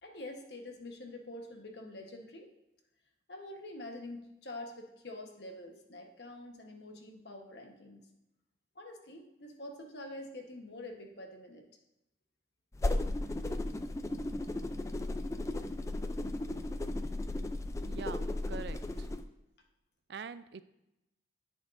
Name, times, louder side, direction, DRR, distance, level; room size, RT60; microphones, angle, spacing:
voice 1, 0.0-2.5 3.3-8.0 8.7-11.6, left 1 dB, 70° left, 3 dB, 1.1 m, -46 dB
sound 1, 12.7-19.2, left 2 dB, 15° left, 0.3 m, -35 dB
voice 2, 17.9-18.8 20.1-20.6, right 5 dB, 65° right, 14 dB, 0.4 m, -44 dB
10.0 x 8.1 x 2.6 m, 0.91 s
head